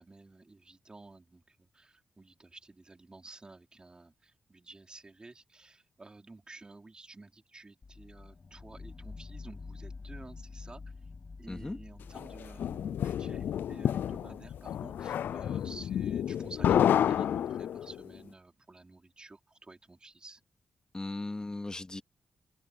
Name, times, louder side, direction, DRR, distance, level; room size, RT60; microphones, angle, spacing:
voice 1, 0.0-10.9 11.4-20.4, right 3 dB, 25° right, 4.0 m, -52 dB
sound 1, 7.8-17.6, left 4 dB, 40° left, 2.5 m, -49 dB
voice 2, 11.5-11.8 20.9-22.0, left 2 dB, 25° left, 2.5 m, -37 dB
sound 2, 12.2-18.0, left 10 dB, 80° left, 0.4 m, -30 dB
open air
cardioid pair, 75°, 3 cm